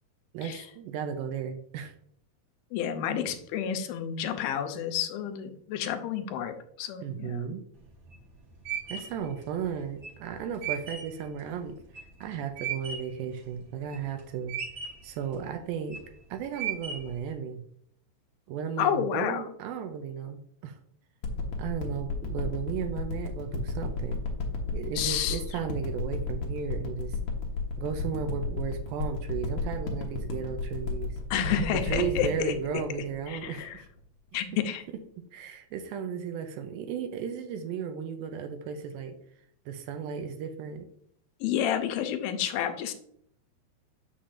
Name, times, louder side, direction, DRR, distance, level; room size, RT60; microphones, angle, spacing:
voice 1, 0.3-1.9 7.0-7.6 8.9-11.8 12.2-14.6 15.0-16.0 16.3-17.6 18.5-20.8 21.6-24.2 24.7-27.2 27.8-31.2 31.8-33.9 35.2-39.2 39.7-40.9, right 7 dB, 80° right, 7 dB, 2.3 m, -35 dB
voice 2, 2.7-7.5 18.8-19.5 25.0-25.4 31.3-32.5 33.3-33.8 34.3-34.8 41.4-42.9, left 9 dB, 85° left, 7 dB, 2.6 m, -30 dB
sound 1, 7.8-13.2 13.6-14.2 14.5-15.1 15.7-16.1 16.5-17.2, right 8 dB, 50° right, 2.2 m, -36 dB
sound 2, 21.2-34.0 34.6-34.7, left 3 dB, 65° left, 2.0 m, -33 dB
7.1 x 6.8 x 2.5 m, 0.67 s
omnidirectional pair, 4.2 m